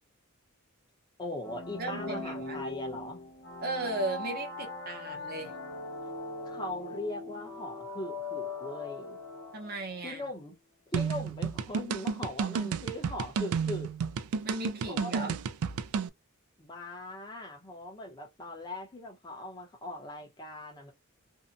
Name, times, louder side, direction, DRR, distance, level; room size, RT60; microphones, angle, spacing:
voice 1, 1.2-3.2 6.4-9.2 10.0-10.5 10.9-13.9 14.9-15.4 16.6-20.9, left 1 dB, 20° left, 0.7 m, -40 dB
sound 1, 1.4-10.1, left 3 dB, 80° left, 0.9 m, -40 dB
voice 2, 1.8-2.6 3.6-5.5 9.5-10.2 14.4-15.4, right 2 dB, 45° right, 0.7 m, -36 dB
sound 2, 10.9-16.1, right 6 dB, 80° right, 0.3 m, -31 dB
2.7 x 2.1 x 2.5 m
head